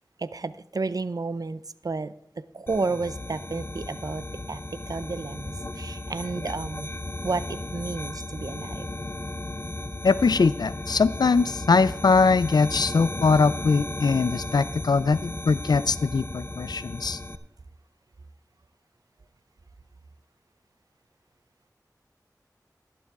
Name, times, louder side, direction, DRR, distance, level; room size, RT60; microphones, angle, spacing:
voice 1, 0.2-2.1 2.5-4.6 4.9-6.9 7.2-8.9, right 3 dB, 65° right, 15 dB, 0.5 m, -31 dB
sound 1, 2.7-17.4, left 2 dB, 30° left, 0.7 m, -35 dB
voice 2, 10.0-17.2, left 4 dB, 90° left, 18 dB, 0.4 m, -22 dB
11.5 x 11.0 x 3.6 m, 0.80 s
wide cardioid pair, 50°, 7 cm